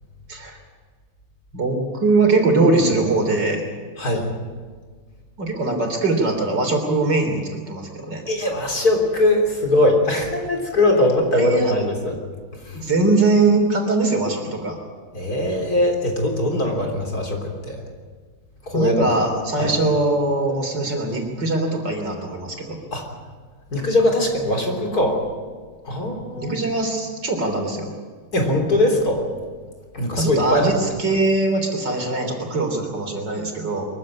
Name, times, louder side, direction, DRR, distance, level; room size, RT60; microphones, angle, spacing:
voice 1, 1.5-3.6 5.4-8.2 11.3-11.7 12.7-14.8 18.7-22.8 26.4-27.9 30.2-33.9, right 2 dB, 55° right, 4 dB, 4.1 m, -21 dB
voice 2, 4.0-4.3 8.3-12.1 12.6-12.8 15.1-17.8 18.7-19.1 19.6-19.7 22.9-23.0 23.7-25.2 25.8-26.6 28.3-29.2 29.9-30.7, left 1 dB, 45° left, 2 dB, 4.0 m, -21 dB
23.5 x 15.0 x 9.7 m, 1.5 s
omnidirectional pair, 2.3 m